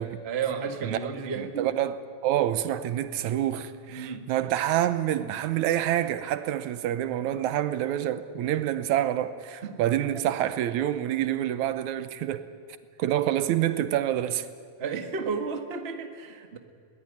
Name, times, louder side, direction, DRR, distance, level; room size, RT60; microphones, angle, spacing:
voice 1, 0.2-1.7 3.9-4.3 9.6-9.8 10.1-10.2 14.8-16.6, right 5 dB, 30° right, 1.2 m, -32 dB
voice 2, 0.8-2.0 2.2-12.5 13.0-14.5, right 12 dB, 85° right, 2.3 m, -27 dB
21.5 x 18.5 x 9.8 m
omnidirectional pair, 3.4 m